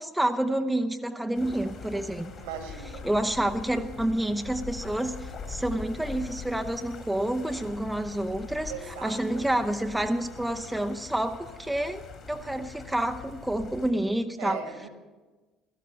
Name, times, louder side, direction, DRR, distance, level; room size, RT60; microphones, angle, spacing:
voice 1, 0.0-2.3 3.0-12.0 12.3-14.6, right 1 dB, 5° right, 6 dB, 0.8 m, -29 dB
sound 1, 1.3-13.9, left 5 dB, 50° left, 3.1 m, -43 dB
voice 2, 2.4-3.0 8.7-9.5 14.4-14.9, right 7 dB, 70° right, 6 dB, 2.0 m, -39 dB
16.5 x 13.5 x 5.6 m, 1.2 s
figure-of-eight pair, 55°, 0 cm